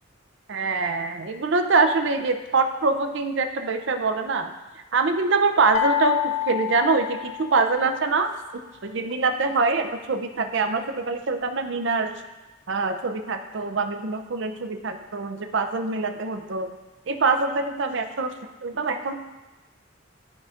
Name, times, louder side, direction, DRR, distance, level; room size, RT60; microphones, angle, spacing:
voice 1, 0.5-4.5 4.9-8.3 8.8-12.1 12.7-16.7 17.1-18.3 18.6-19.1, right 4 dB, 60° right, 7 dB, 0.5 m, -24 dB
sound 1, 5.7-7.9, left 13 dB, 35° left, 0.3 m, -27 dB
12.0 x 4.9 x 2.5 m, 1.2 s
head